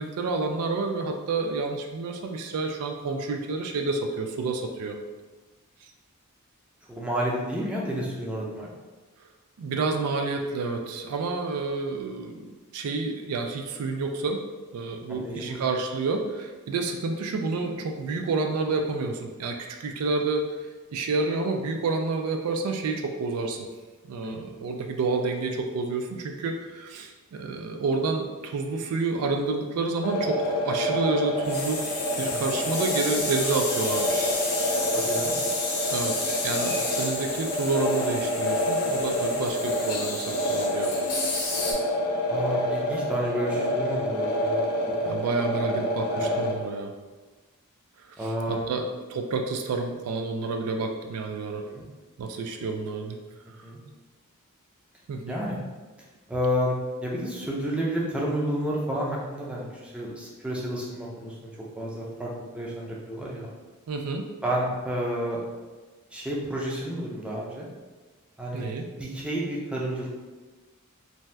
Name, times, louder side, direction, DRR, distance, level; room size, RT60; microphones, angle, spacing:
voice 1, 0.0-5.0 9.6-14.4 14.7-20.4 20.9-23.7 24.0-31.8 32.2-34.4 35.9-40.9 45.0-46.9 48.2-51.6 52.2-53.2 55.1-55.4 63.9-64.2 68.5-68.9, right 3 dB, 75° right, 4 dB, 0.3 m, -29 dB
voice 2, 6.9-8.7 15.1-15.6 24.2-24.3 32.2-32.6 34.9-35.3 42.3-44.6 45.0-45.1 45.6-45.8 46.1-46.5 48.2-48.8 51.6-51.8 53.6-53.8 55.3-55.6 56.3-56.7 57.0-61.5 61.8-63.5 64.4-65.4 66.1-67.7 68.4-70.1, equal, 5° right, -4 dB, 0.5 m, -30 dB
sound 1, 30.0-46.5, equal, 80° left, 0.6 m, -28 dB
sound 2, 31.4-41.7, left 3 dB, 45° left, 0.7 m, -31 dB
2.7 x 2.2 x 3.2 m, 1.3 s
head